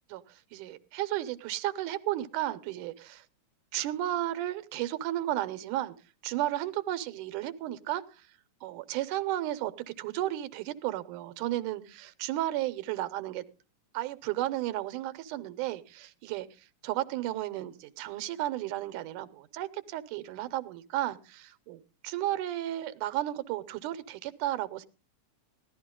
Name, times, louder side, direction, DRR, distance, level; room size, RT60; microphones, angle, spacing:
voice 1, 0.1-3.3 3.7-6.0 6.2-8.3 8.6-9.7 10.0-13.4 13.9-16.5 16.8-24.9, right 14 dB, 85° right, 13 dB, 2.3 m, -33 dB
16.5 x 11.5 x 3.7 m, 0.33 s
omnidirectional pair, 3.5 m